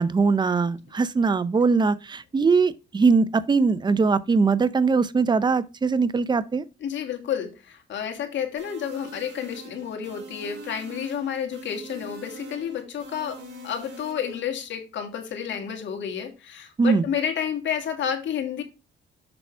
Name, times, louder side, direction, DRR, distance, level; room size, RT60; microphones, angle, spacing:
voice 1, 0.0-6.6 16.8-17.1, right 4 dB, 20° right, 0.6 m, -21 dB
voice 2, 6.8-13.4 13.6-18.6, left 8 dB, 70° left, 2.2 m, -30 dB
sound 1, 8.6-14.4, right 3 dB, 65° right, 3.2 m, -43 dB
6.9 x 5.7 x 3.4 m
cardioid pair, 90°, 20 cm